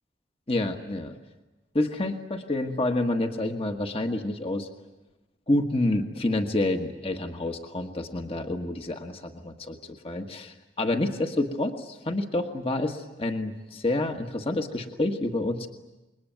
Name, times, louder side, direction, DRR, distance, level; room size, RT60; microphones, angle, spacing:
voice 1, 0.5-1.2 1.7-4.7 5.5-9.8 10.0-15.7, left 2 dB, 35° left, 5 dB, 1.5 m, -28 dB
27.5 x 22.0 x 9.2 m, 1.0 s
head